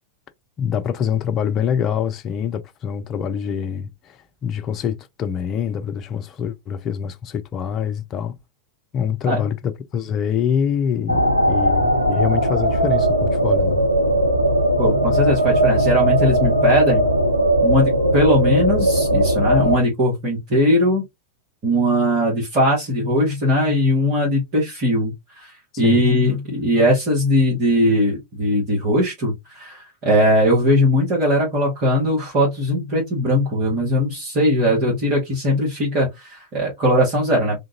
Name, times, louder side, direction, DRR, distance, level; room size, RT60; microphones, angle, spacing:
voice 1, 0.6-8.4 8.9-13.8 25.8-26.0, left 8 dB, 30° left, 0.5 m, -25 dB
sound 1, 11.1-19.8, right 1 dB, 90° right, 0.5 m, -18 dB
voice 2, 14.8-17.0 17.6-21.0 21.6-37.6, equal, 40° right, 1.5 m, -19 dB
3.6 x 2.5 x 2.8 m
figure-of-eight pair, 90°, 0 cm